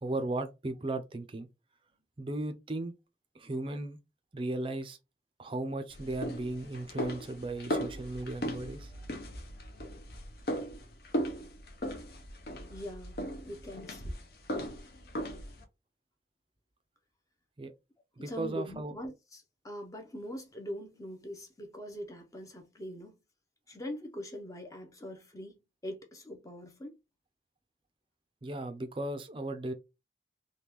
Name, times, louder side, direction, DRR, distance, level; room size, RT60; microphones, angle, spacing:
voice 1, 0.0-1.5 2.2-2.9 3.3-4.0 4.3-5.0 5.4-8.9 17.6-17.7 18.2-18.9 28.4-29.7, right 2 dB, 30° right, 0.4 m, -36 dB
sound 1, 5.9-15.6, equal, 55° left, 0.7 m, -38 dB
voice 2, 12.7-14.2 18.2-23.1 23.7-27.0, equal, 20° left, 0.6 m, -43 dB
3.5 x 2.2 x 2.9 m
head